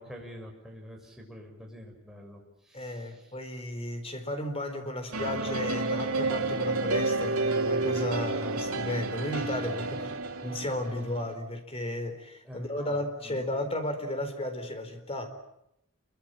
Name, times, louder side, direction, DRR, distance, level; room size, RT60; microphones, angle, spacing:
voice 1, 0.0-3.3 9.9-10.3 12.4-13.4, equal, ahead, 0 dB, 6.5 m, -47 dB
voice 2, 2.7-10.1 10.4-15.3, left 1 dB, 25° left, 8 dB, 4.1 m, -34 dB
sound 1, 5.1-11.3, right 3 dB, 85° right, 3.2 m, -30 dB
28.5 x 23.5 x 7.6 m, 0.80 s
head